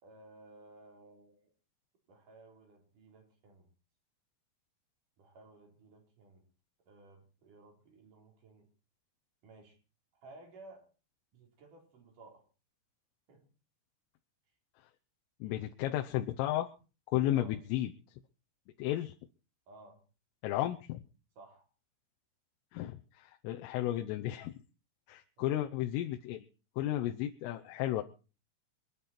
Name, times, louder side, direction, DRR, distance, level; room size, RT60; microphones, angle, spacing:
voice 1, 0.0-1.5 2.1-3.7 5.2-6.4 6.9-8.7 9.4-9.8 10.2-10.8 11.3-12.5 13.3-13.5 17.3-17.5 19.7-20.0 21.4-21.7 25.4-25.7, right 2 dB, 45° right, 2 dB, 5.1 m, -56 dB
voice 2, 15.4-16.7 17.1-17.9 18.8-19.1 20.4-21.0 22.7-24.5 25.1-26.5 26.8-28.0, left 13 dB, 85° left, 4 dB, 3.5 m, -33 dB
26.5 x 9.8 x 4.3 m, 0.35 s
omnidirectional pair, 5.7 m